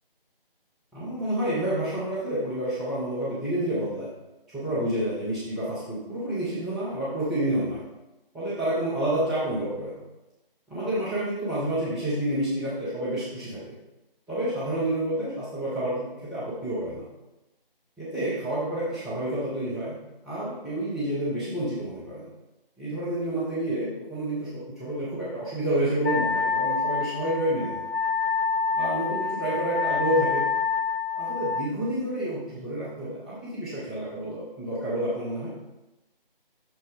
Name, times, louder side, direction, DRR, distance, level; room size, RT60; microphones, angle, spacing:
voice 1, 0.9-4.1 4.5-7.8 8.3-10.0 10.7-13.7 14.3-17.0 18.0-19.9 20.2-22.3 22.8-27.8 28.7-30.5 31.2-35.5, right 1 dB, ahead, -15 dB, 0.5 m, -29 dB
Wind instrument woodwind instrument, 26.0-31.7, left 5 dB, 75° left, 0.9 m, -27 dB
6.2 x 3.3 x 5.2 m, 0.99 s
figure-of-eight pair, 165°, 29 cm